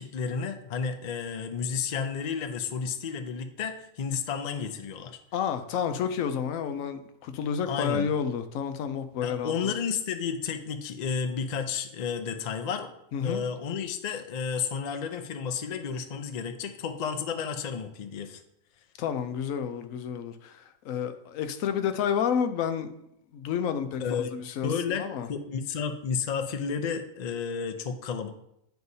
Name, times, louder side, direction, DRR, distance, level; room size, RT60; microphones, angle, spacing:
voice 1, 0.0-5.2 7.7-8.1 9.2-12.9 13.2-18.4 24.0-24.3 24.6-28.3, left 6 dB, 55° left, 0.5 m, -32 dB
voice 2, 5.3-9.5 13.1-13.4 19.0-22.9 23.3-25.3, left 7 dB, 90° left, 1.0 m, -30 dB
9.5 x 4.6 x 2.7 m
omnidirectional pair, 1.4 m